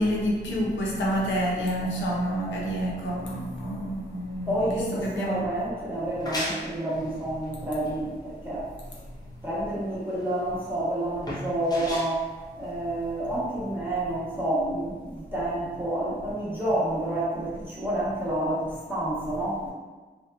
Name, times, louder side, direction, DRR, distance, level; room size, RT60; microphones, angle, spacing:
voice 1, 0.0-5.5, equal, 85° left, -4 dB, 0.6 m, -28 dB
voice 2, 4.5-8.7 9.4-12.3 12.6-19.7, right 1 dB, 10° right, -8 dB, 1.0 m, -29 dB
sound 1, 5.9-13.4, equal, 20° left, 0.6 m, -38 dB
2.8 x 2.2 x 2.3 m, 1.3 s
cardioid pair, 75°, 19 cm